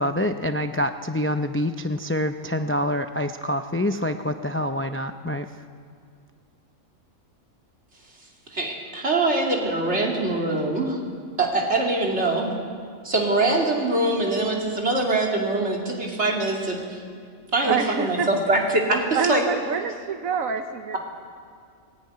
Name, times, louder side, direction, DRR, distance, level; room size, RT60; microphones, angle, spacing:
voice 1, 0.0-5.5, left 1 dB, 20° left, 7 dB, 0.3 m, -26 dB
voice 2, 8.5-11.0 11.4-12.5 13.0-17.0 17.5-19.4, right 2 dB, 50° right, -1 dB, 3.3 m, -23 dB
voice 3, 17.6-18.3 19.1-21.0, right 6 dB, 80° right, 6 dB, 1.4 m, -26 dB
20.0 x 16.0 x 9.7 m, 2.2 s
omnidirectional pair, 1.4 m